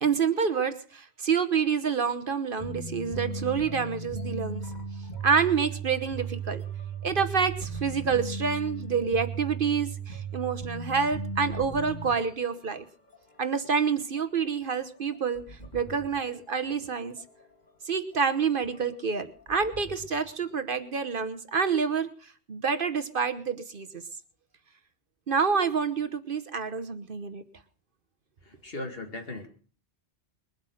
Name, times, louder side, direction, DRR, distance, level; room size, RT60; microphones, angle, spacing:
voice 1, 0.0-4.6 5.2-6.6 7.0-12.8 13.4-17.2 17.9-22.1 22.5-24.0 25.3-27.4, right 6 dB, 55° right, 11 dB, 1.1 m, -28 dB
sound 1, 2.6-12.8 13.1-13.3 13.6-13.7 14.2-16.8 17.2-17.7 18.1-18.2 18.6-20.5, right 4 dB, 40° left, 2.7 m, -37 dB
voice 2, 28.5-29.5, left 2 dB, 55° left, 4 dB, 2.4 m, -37 dB
21.5 x 8.1 x 6.4 m, 0.42 s
omnidirectional pair, 1.2 m